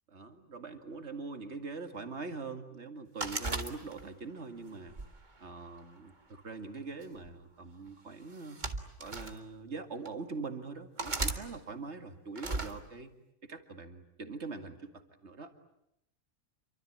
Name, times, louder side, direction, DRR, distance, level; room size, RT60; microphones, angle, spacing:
voice 1, 0.1-4.9 5.4-8.6 9.0-13.1 13.4-15.5, right 4 dB, 50° right, 7 dB, 2.4 m, -43 dB
sound 1, 3.2-4.3 4.9-6.1 7.0-7.3 8.3-9.4 10.1-10.2 11.0-11.4 12.4-12.7, right 3 dB, 30° right, 1.9 m, -36 dB
28.0 x 24.5 x 8.7 m, 0.81 s
omnidirectional pair, 1.5 m